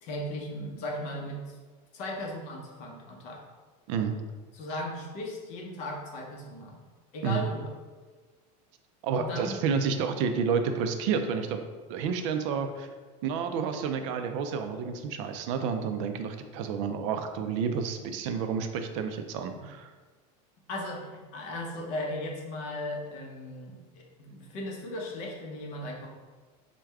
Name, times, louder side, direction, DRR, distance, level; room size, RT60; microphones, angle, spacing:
voice 1, 0.0-1.6 1.9-3.4 4.5-6.8 7.1-7.7 9.1-9.6 20.7-26.1, left 1 dB, 45° left, -1 dB, 0.8 m, -37 dB
voice 2, 9.0-11.6 11.9-12.9 13.2-19.9, right 6 dB, 60° right, 7 dB, 0.4 m, -30 dB
4.7 x 2.2 x 3.4 m, 1.4 s
cardioid pair, 170°, 18 cm